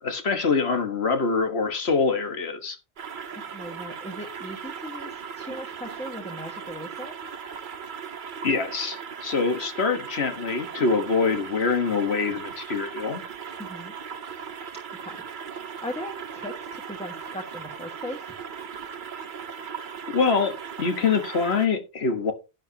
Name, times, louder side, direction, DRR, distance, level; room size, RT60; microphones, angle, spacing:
voice 1, 0.0-2.8 8.4-13.2 19.7-19.8 20.1-22.3, left 4 dB, 70° left, 1.6 m, -25 dB
sound 1, 3.0-21.7, right 6 dB, 50° right, 0.8 m, -38 dB
voice 2, 3.3-7.2 13.6-13.9 15.0-15.2 15.5-18.3, left 1 dB, 5° left, 1.4 m, -38 dB
11.0 x 9.0 x 2.8 m
omnidirectional pair, 1.1 m